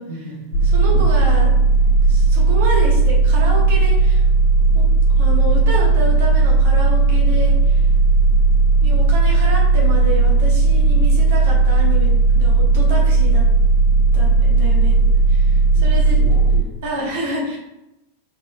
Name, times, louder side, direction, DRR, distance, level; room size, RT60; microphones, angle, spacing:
voice 1, 0.0-1.1 15.5-15.9 16.2-16.8, right 1 dB, 80° right, -4 dB, 1.1 m, -34 dB
sound 1, 0.5-16.6, right 3 dB, 55° left, 1.3 m, -15 dB
voice 2, 0.7-1.5 2.1-4.2 4.7-4.8 5.2-7.9 8.8-13.5 14.1-15.0 15.3-16.2 16.8-17.6, right 1 dB, 55° right, -3 dB, 1.2 m, -28 dB
5.2 x 4.0 x 2.2 m, 0.93 s
figure-of-eight pair, 90°, 0 cm